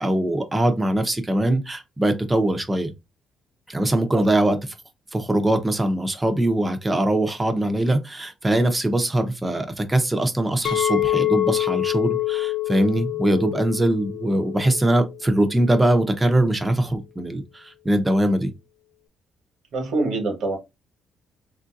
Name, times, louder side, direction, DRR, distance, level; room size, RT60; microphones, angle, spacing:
voice 1, 0.0-2.9 3.7-4.6 5.1-18.5, right 1 dB, 15° right, 0.7 m, -22 dB
Chink clink, 10.6-15.8, left 14 dB, 70° left, 0.4 m, -26 dB
voice 2, 19.7-20.6, right 2 dB, 70° right, 1.2 m, -25 dB
3.6 x 2.6 x 2.4 m
cardioid pair, 90°, 0 cm